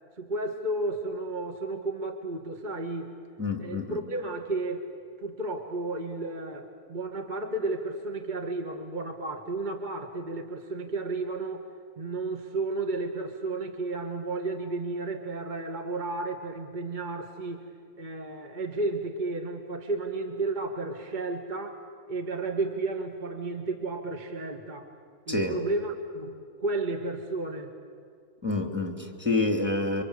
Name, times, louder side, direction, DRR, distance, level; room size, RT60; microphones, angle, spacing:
voice 1, 0.2-3.1 3.6-4.9 5.2-11.7 12.0-17.6 18.0-21.8 22.1-24.9 25.3-27.7, right 2 dB, 30° right, 4 dB, 1.6 m, -32 dB
voice 2, 3.4-4.0 25.3-25.6 28.4-30.0, left 2 dB, 5° right, 3 dB, 2.8 m, -28 dB
28.5 x 25.0 x 8.3 m, 2.3 s
omnidirectional pair, 1.6 m